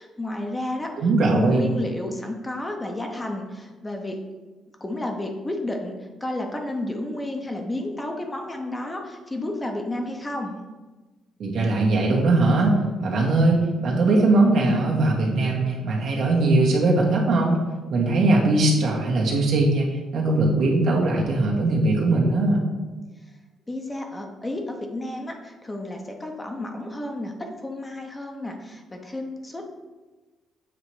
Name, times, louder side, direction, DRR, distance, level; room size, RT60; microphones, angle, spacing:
voice 1, 0.0-1.0 1.2-4.2 4.8-10.6 23.3-23.4 23.7-29.6, left 1 dB, 20° left, 3 dB, 0.8 m, -31 dB
voice 2, 1.0-1.6 11.4-17.6 17.9-22.6, right 2 dB, 70° right, -2 dB, 1.4 m, -20 dB
7.5 x 2.9 x 4.8 m, 1.2 s
cardioid pair, 90°, 0 cm